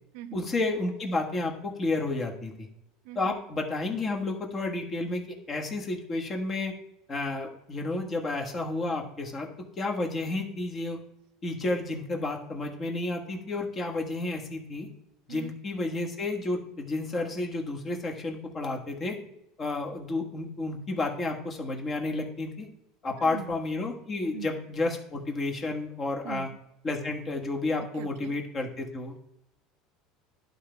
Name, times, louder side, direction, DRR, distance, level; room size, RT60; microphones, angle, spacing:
voice 1, 0.3-2.7 3.1-6.7 7.1-9.5 9.8-11.0 11.4-14.9 15.3-19.2 19.6-22.7 23.0-26.5 26.8-29.1, left 2 dB, 30° left, 1 dB, 1.4 m, -31 dB
voice 2, 3.0-3.3 15.3-15.5 23.2-23.5 24.3-24.5 26.2-26.6 27.8-28.4, right 12 dB, 70° right, 13 dB, 0.4 m, -41 dB
11.5 x 3.9 x 3.5 m, 0.84 s
supercardioid pair, 120°, 0 cm